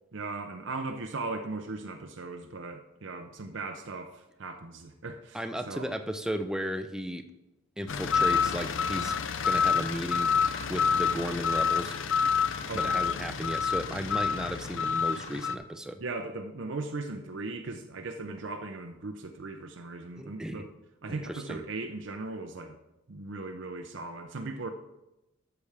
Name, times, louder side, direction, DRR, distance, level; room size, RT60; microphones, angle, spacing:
voice 1, 0.1-5.9 12.7-13.2 16.0-20.7 21.0-22.8 23.1-24.7, right 3 dB, 60° right, 5 dB, 0.6 m, -38 dB
voice 2, 5.3-7.3 7.8-9.1 9.4-10.3 10.7-11.9 12.7-16.0 20.2-20.6 21.1-21.6, equal, 5° right, 7 dB, 0.5 m, -35 dB
sound 1, 7.9-15.6, left 6 dB, 60° left, 0.5 m, -28 dB
13.0 x 6.9 x 3.4 m, 0.94 s
head